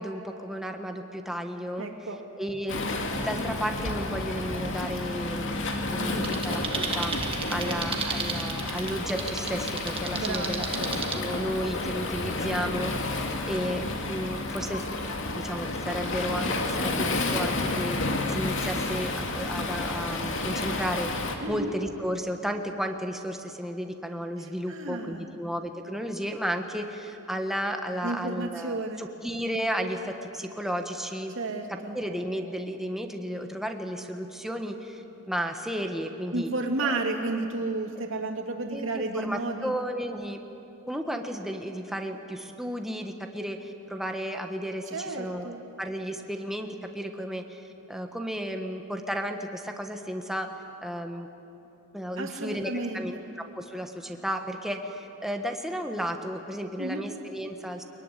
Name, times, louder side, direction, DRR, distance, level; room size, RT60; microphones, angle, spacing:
voice 1, 0.0-1.9 2.4-2.9 3.2-14.8 15.3-18.0 18.3-21.1 21.5-31.3 31.7-36.5 36.8-37.0 38.7-40.4 40.9-45.5 45.8-50.5 50.8-51.3 51.9-57.8, equal, ahead, 4 dB, 1.4 m, -33 dB
voice 2, 1.8-2.2 5.9-6.6 7.6-7.8 10.1-10.9 21.4-21.7 24.4-25.4 28.0-29.1 31.3-32.0 36.3-39.7 44.9-45.6 52.2-53.2 56.8-57.0, right 2 dB, 65° right, 3 dB, 2.7 m, -32 dB
Waves surf, 2.7-21.4, left 2 dB, 60° left, 2.4 m, -31 dB
sound 1, 6.2-11.2, right 5 dB, 25° right, 1.7 m, -34 dB
23.0 x 22.0 x 10.0 m, 3.0 s
head